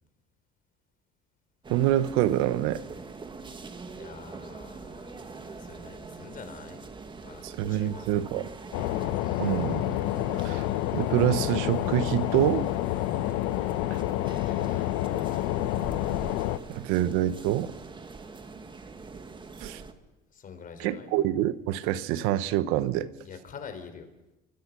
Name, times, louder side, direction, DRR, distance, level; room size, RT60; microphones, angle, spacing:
sound 1, 1.6-19.9, right 4 dB, 20° right, 2.0 m, -43 dB
voice 1, 1.7-2.8 7.4-8.5 9.4-10.0 10.4-10.6 10.9-12.6 16.7-17.7 19.6-19.8 20.8-23.1, right 13 dB, 90° right, 1.2 m, -26 dB
voice 2, 3.9-6.8 7.2-8.4 14.4-14.9 20.3-21.1 23.2-24.1, left 6 dB, 40° left, 4.4 m, -46 dB
sound 2, 8.7-16.6, left 15 dB, 85° left, 1.1 m, -28 dB
28.5 x 24.5 x 6.3 m
cardioid pair, 120°, 21 cm